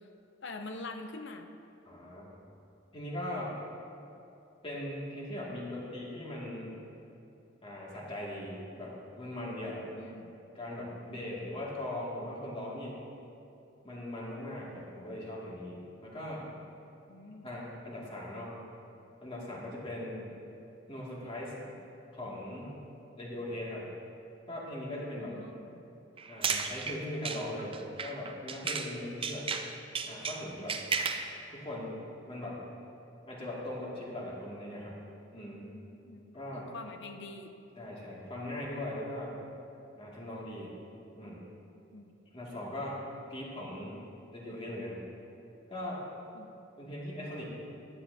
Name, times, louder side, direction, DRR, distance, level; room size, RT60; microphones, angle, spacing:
voice 1, 0.4-1.5 10.0-10.3 17.1-17.5 25.2-25.9 35.6-37.5 41.9-42.2 46.3-46.6, left 2 dB, 65° left, 5 dB, 0.7 m, -45 dB
voice 2, 1.9-2.4 2.9-3.6 4.6-6.8 7.6-9.9 10.5-13.0 13.8-16.5 17.4-18.6 19.2-20.3 20.9-21.7 22.1-22.7 23.2-23.9 24.5-25.4 26.3-29.5 30.0-30.8 31.5-32.6 33.3-35.0 35.3-35.7 36.3-36.7 37.8-39.4 40.0-40.7 41.1-41.4 42.3-43.0 43.3-44.0 44.3-45.0 45.7-46.0 46.8-47.6, left 1 dB, 30° left, -5 dB, 2.2 m, -40 dB
sound 1, 26.2-28.9 29.2-31.3, right 5 dB, 30° right, 0.5 m, -34 dB
15.0 x 10.5 x 2.8 m, 2.7 s
head